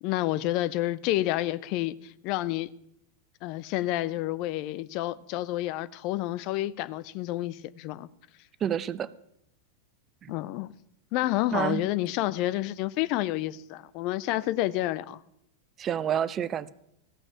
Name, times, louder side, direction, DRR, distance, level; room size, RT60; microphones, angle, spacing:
voice 1, 0.0-2.7 3.4-8.1 10.3-10.7 11.1-15.2, left 16 dB, 45° left, 0.5 m, -29 dB
voice 2, 8.6-9.1 10.2-10.4 11.5-11.8 15.8-16.7, right 9 dB, 25° right, 0.5 m, -28 dB
15.5 x 6.0 x 8.9 m
figure-of-eight pair, 90°, 0 cm